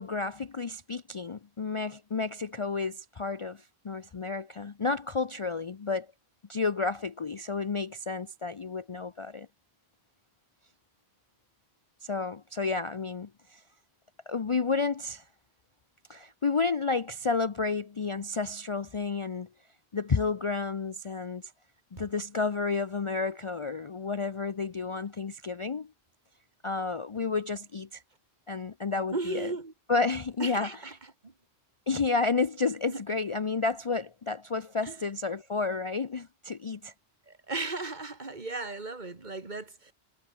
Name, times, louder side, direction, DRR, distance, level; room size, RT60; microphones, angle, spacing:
voice 1, 0.0-6.1 6.5-9.5 12.0-13.6 14.3-15.2 16.1-19.5 19.9-21.5 21.9-25.9 26.6-28.0 28.5-29.6 29.9-31.0 31.9-36.9, left 4 dB, 35° left, 0.6 m, -31 dB
voice 2, 29.1-29.7 30.4-30.9 31.2-31.3 32.9-33.0 34.9-35.0 37.3-39.9, right 3 dB, 45° right, 2.1 m, -36 dB
omnidirectional pair, 1.1 m